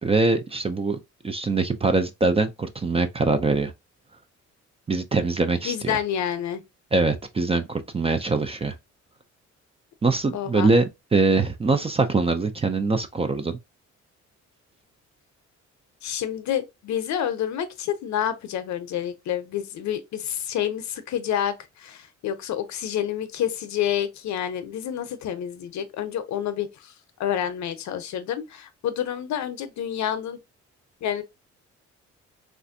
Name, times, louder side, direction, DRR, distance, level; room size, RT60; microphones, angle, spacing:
voice 1, 0.0-1.0 1.2-3.7 4.9-6.0 6.9-8.7 10.0-13.6, right 3 dB, 20° right, 0.4 m, -23 dB
voice 2, 5.6-6.6 10.3-10.7 16.0-26.9 27.2-30.4 31.0-31.2, left 10 dB, 70° left, 0.6 m, -28 dB
3.2 x 2.5 x 2.6 m
cardioid pair, 90°, 30 cm